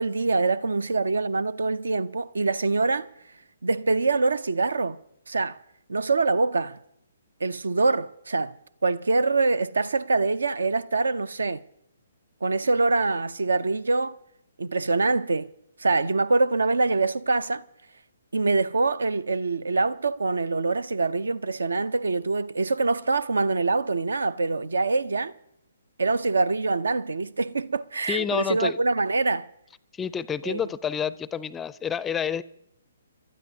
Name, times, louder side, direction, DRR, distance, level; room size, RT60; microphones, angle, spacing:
voice 1, 0.0-3.1 3.6-5.0 5.3-5.6 5.9-6.8 7.4-8.6 8.8-11.6 12.4-14.2 14.6-15.5 15.8-17.6 18.3-25.3 26.0-29.5 30.4-30.6, right 3 dB, 75° right, 0.6 m, -24 dB
voice 2, 28.1-28.8 29.9-32.4, left 7 dB, 10° left, 0.4 m, -29 dB
29.0 x 12.5 x 2.8 m
figure-of-eight pair, 130°, 0 cm